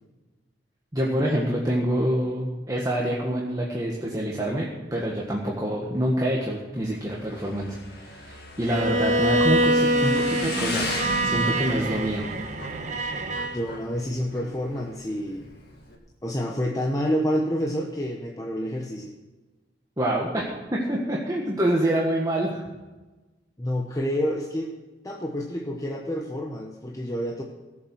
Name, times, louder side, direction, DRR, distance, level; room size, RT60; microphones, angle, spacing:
voice 1, 0.9-10.9 11.2-12.2 20.0-22.6, right 1 dB, 20° right, -3 dB, 1.5 m, -26 dB
Motorcycle / Engine, 6.7-16.0, left 1 dB, 60° left, 2.2 m, -36 dB
Bowed string instrument, 8.7-13.6, right 1 dB, 40° right, 1.2 m, -25 dB
voice 2, 13.5-15.5 16.2-19.1 23.6-24.7 25.0-27.4, equal, 20° left, 0 dB, 1.0 m, -28 dB
17.0 x 7.2 x 6.3 m, 1.2 s
head